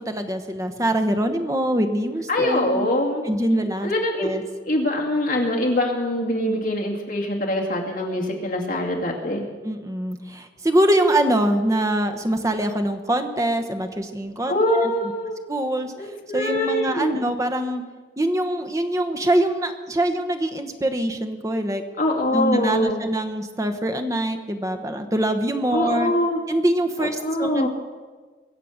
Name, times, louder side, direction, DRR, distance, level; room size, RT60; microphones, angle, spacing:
voice 1, 0.1-2.9 3.3-3.9 4.2-4.4 9.6-14.9 15.5-15.9 16.3-17.8 18.2-21.8 22.3-26.1 26.5-27.7, right 1 dB, 20° right, 7 dB, 1.0 m, -23 dB
voice 2, 2.3-3.3 3.8-4.3 4.6-9.5 14.5-15.4 16.0-17.2 22.0-23.0 25.7-26.4 27.0-27.7, left 1 dB, 50° left, -1 dB, 2.5 m, -23 dB
22.5 x 7.6 x 6.5 m, 1.4 s
head